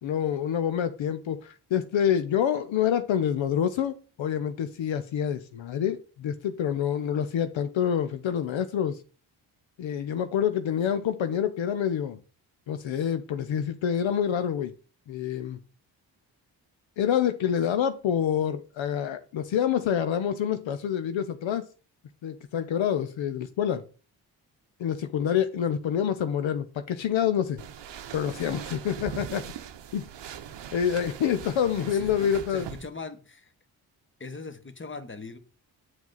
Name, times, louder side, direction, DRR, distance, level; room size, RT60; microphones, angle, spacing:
voice 1, 0.0-9.0 9.8-12.2 12.7-14.7 15.1-15.6 17.0-21.7 22.2-23.8 24.8-27.6 28.1-29.4 29.9-30.1 30.7-32.7, left 9 dB, 70° left, 10 dB, 0.7 m, -27 dB
sound 1, 27.6-32.9, right 9 dB, 60° right, 0.8 m, -41 dB
voice 2, 31.8-33.5 34.2-35.4, left 4 dB, 25° left, 10 dB, 1.2 m, -41 dB
7.7 x 4.7 x 4.0 m, 0.36 s
supercardioid pair, 45°, 48 cm